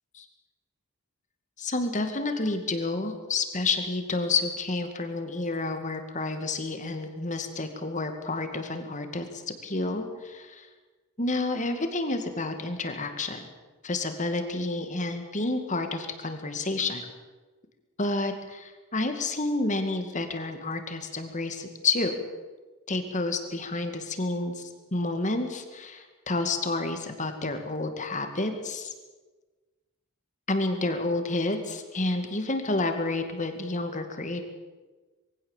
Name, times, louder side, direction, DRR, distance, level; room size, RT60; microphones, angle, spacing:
voice 1, 1.6-10.7 11.2-13.5 13.8-17.1 18.0-22.2 22.9-28.9 30.5-34.4, left 2 dB, 35° left, 7 dB, 2.1 m, -30 dB
22.0 x 16.0 x 7.3 m, 1.3 s
head